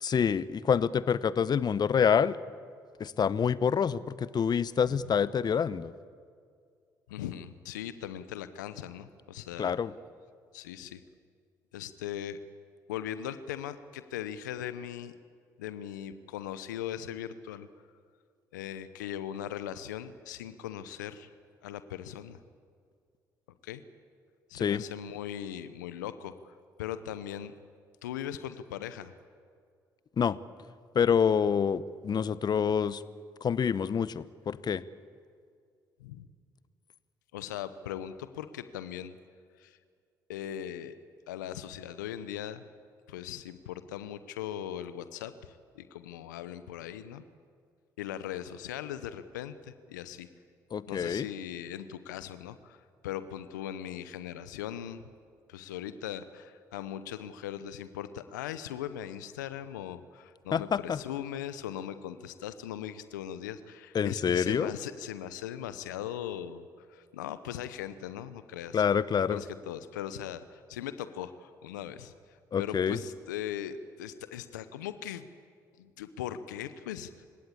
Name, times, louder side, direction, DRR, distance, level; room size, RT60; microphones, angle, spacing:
voice 1, 0.0-2.4 3.0-5.9 9.6-9.9 24.5-24.8 30.2-30.4 30.9-33.0 33.4-34.8 50.7-51.3 60.5-61.0 63.9-64.7 68.7-69.4 72.5-73.0, left 7 dB, 45° left, 17 dB, 0.8 m, -27 dB
voice 2, 4.8-5.1 7.1-9.7 10.5-11.0 11.7-12.4 12.9-15.1 15.6-17.7 18.5-21.3 21.6-22.4 23.6-23.8 24.5-26.5 26.8-27.5 28.0-29.1 36.0-36.3 37.3-39.2 39.6-39.8 40.3-41.0 41.3-42.7 43.1-47.2 48.0-50.3 50.9-55.0 55.5-68.8 69.3-72.1 72.6-75.3 75.8-77.1, left 10 dB, 90° left, 13 dB, 0.8 m, -39 dB
28.5 x 17.0 x 8.6 m, 2.2 s
hypercardioid pair, 50°, 10 cm